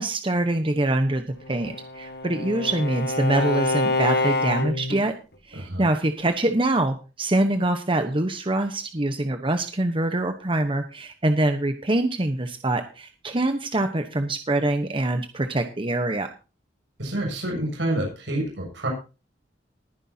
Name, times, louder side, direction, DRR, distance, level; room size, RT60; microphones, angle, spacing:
voice 1, 0.0-5.1 5.5-16.3, right 2 dB, 30° right, 7 dB, 1.0 m, -24 dB
Bowed string instrument, 1.4-5.0, left 2 dB, 65° left, 1.9 m, -26 dB
voice 2, 5.5-5.8 17.0-18.9, right 1 dB, 80° right, -1 dB, 7.5 m, -28 dB
20.5 x 9.9 x 2.8 m, 0.32 s
head